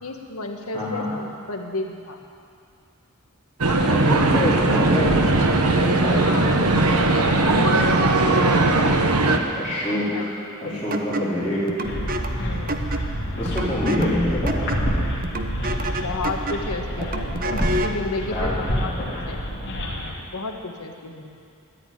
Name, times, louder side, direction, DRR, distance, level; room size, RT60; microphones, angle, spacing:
voice 1, 0.0-2.2 6.1-6.5 7.1-8.6 9.4-9.6 10.1-10.2 10.5-10.9 12.4-13.3 15.9-21.3, left 2 dB, 75° left, 3 dB, 1.6 m, -33 dB
voice 2, 0.7-1.1 3.9-5.4 5.6-6.6 9.5-10.3 10.6-11.6 13.4-14.7 18.3-19.3, left 1 dB, 5° left, -15 dB, 4.3 m, -26 dB
sound 1, 3.6-9.4, right 2 dB, 80° right, 1.2 m, -19 dB
sound 2, 10.9-18.0, right 1 dB, 40° right, 0.9 m, -30 dB
sound 3, 11.8-20.1, equal, 50° left, 2.8 m, -28 dB
13.5 x 11.0 x 9.5 m, 2.4 s
head